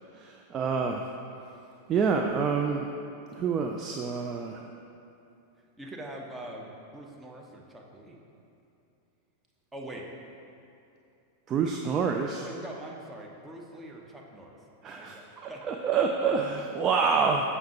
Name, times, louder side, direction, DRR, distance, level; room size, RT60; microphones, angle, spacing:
voice 1, 0.1-1.1 1.9-2.9 3.3-4.6 11.5-12.5 14.8-17.5, right 5 dB, 30° right, 3 dB, 0.3 m, -27 dB
voice 2, 5.8-8.2 9.7-10.0 12.4-14.6 14.9-15.6 15.9-16.2 17.0-17.1, right 1 dB, 10° right, -1 dB, 0.8 m, -43 dB
7.2 x 5.4 x 2.9 m, 2.8 s
figure-of-eight pair, 90°, 0 cm